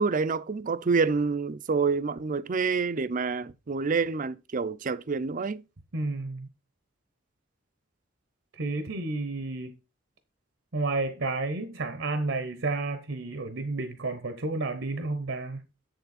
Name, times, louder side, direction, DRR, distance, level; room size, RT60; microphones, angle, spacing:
voice 1, 0.0-5.6, right 4 dB, 40° right, 0.5 m, -27 dB
voice 2, 5.9-6.5 8.6-9.7 10.7-15.6, right 3 dB, 65° right, 0.8 m, -31 dB
7.7 x 6.8 x 4.2 m
head